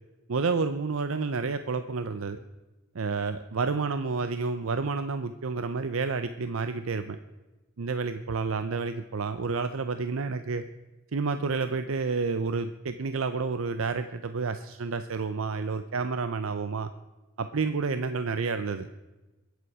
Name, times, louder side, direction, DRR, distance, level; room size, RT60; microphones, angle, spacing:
voice 1, 0.3-2.4 2.9-7.2 7.8-10.6 11.1-16.9 17.4-18.9, right 4 dB, 80° right, 10 dB, 0.6 m, -30 dB
22.5 x 8.2 x 4.8 m, 1.1 s
head